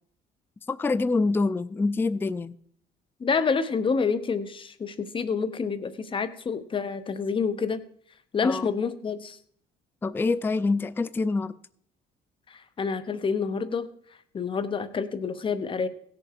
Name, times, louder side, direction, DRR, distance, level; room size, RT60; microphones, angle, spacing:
voice 1, 0.7-2.5 8.4-8.7 10.0-11.5, left 3 dB, 15° left, 18 dB, 0.4 m, -26 dB
voice 2, 3.2-7.8 8.3-9.4 12.5-13.9 14.3-15.9, left 5 dB, 30° left, 13 dB, 1.0 m, -28 dB
16.5 x 6.9 x 4.9 m, 0.63 s
cardioid pair, 110°, 17 cm